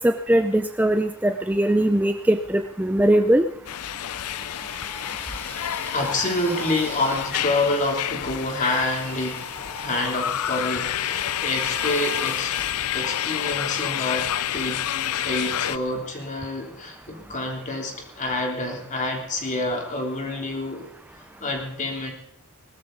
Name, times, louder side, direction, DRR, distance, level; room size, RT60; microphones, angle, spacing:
voice 1, 0.0-3.4, right 1 dB, 10° right, 7 dB, 0.5 m, -20 dB
sound 1, 3.7-15.8, left 11 dB, 85° left, 0.5 m, -29 dB
sound 2, 3.9-7.4 8.3-12.9, equal, 10° left, 3.2 m, -40 dB
voice 2, 5.9-9.5 9.7-12.6 12.9-14.8 15.2-20.8 21.4-22.1, left 2 dB, 35° left, 1 dB, 3.1 m, -27 dB
20.0 x 13.0 x 3.9 m, 0.75 s
head